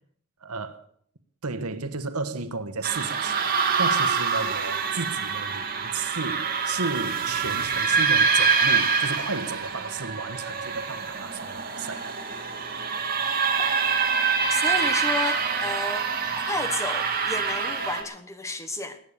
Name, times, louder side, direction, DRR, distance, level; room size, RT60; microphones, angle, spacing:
voice 1, 0.4-0.8 1.4-12.1, right 4 dB, 85° right, 1.4 m, -33 dB
sound 1, 2.8-18.0, right 5 dB, 40° right, 2.5 m, -25 dB
voice 2, 14.5-19.0, left 2 dB, 15° left, 1.1 m, -32 dB
21.5 x 8.9 x 6.8 m
head